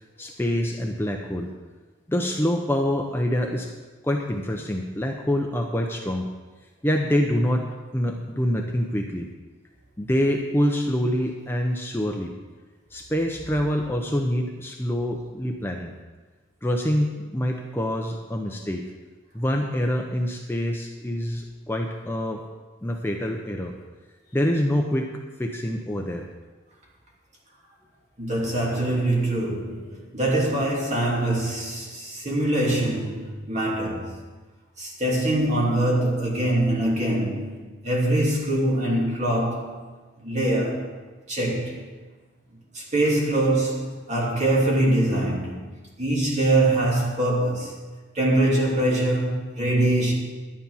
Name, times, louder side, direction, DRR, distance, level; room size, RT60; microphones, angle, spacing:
voice 1, 0.0-1.5 2.1-3.7 4.0-6.3 6.8-9.3 10.0-12.3 12.9-16.0 16.6-18.9 19.3-22.4 22.8-23.7 24.3-26.3, equal, 10° left, 0.7 m, -26 dB
voice 2, 28.2-34.2 34.8-37.6 37.8-39.8 40.2-40.9 41.3-41.9 42.7-45.7 46.0-47.8 48.1-50.1, right 1 dB, 35° right, 2.8 m, -23 dB
11.5 x 9.8 x 5.6 m
head